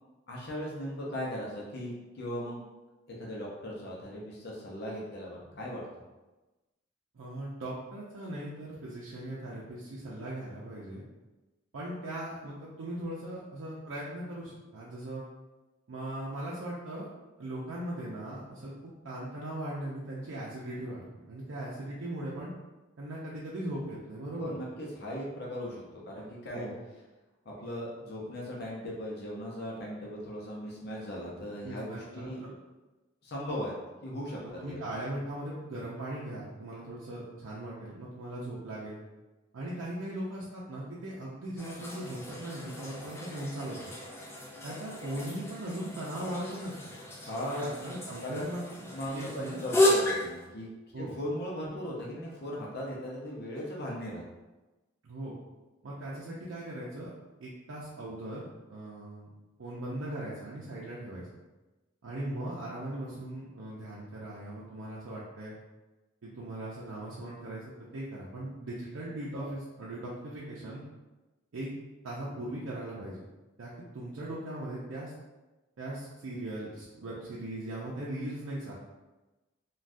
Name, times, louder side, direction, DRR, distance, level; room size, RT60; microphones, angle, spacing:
voice 1, 0.3-2.6 3.2-5.8 24.4-26.7 27.5-32.4 33.2-33.7 34.0-34.8 47.2-47.6 48.2-48.4 48.9-50.7 51.0-54.2, equal, 55° left, -4 dB, 0.6 m, -38 dB
voice 2, 7.1-11.0 11.7-15.2 15.9-17.1 17.4-18.7 19.0-22.5 23.0-24.5 26.5-26.7 31.6-32.5 34.6-39.0 39.5-43.9 44.6-47.0 47.6-49.6 50.9-51.1 55.0-55.3 55.8-57.1 57.4-59.3 59.6-61.4 62.0-65.5 66.2-70.8 71.5-71.7 72.0-73.2 73.6-75.1 75.8-78.7, right 1 dB, 85° right, -6 dB, 0.5 m, -39 dB
sound 1, 41.6-50.5, left 1 dB, 15° left, 0.4 m, -33 dB
3.4 x 2.3 x 2.5 m, 1.1 s
head